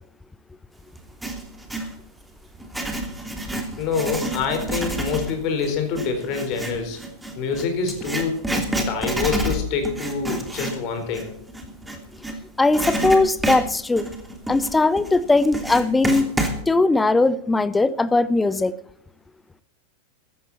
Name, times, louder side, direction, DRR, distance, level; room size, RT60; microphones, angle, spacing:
Writing, 1.0-1.9 2.5-12.4 12.7-16.6, right 1 dB, 5° right, 3.0 m, -28 dB
voice 1, 3.8-7.0 7.4-8.5 8.9-11.3, left 5 dB, 40° left, 6 dB, 4.3 m, -26 dB
voice 2, 12.6-14.1 14.5-16.3 16.7-18.7, left 3 dB, 10° left, 17 dB, 0.9 m, -19 dB
15.0 x 14.5 x 4.2 m, 0.68 s
figure-of-eight pair, 90°, 0 cm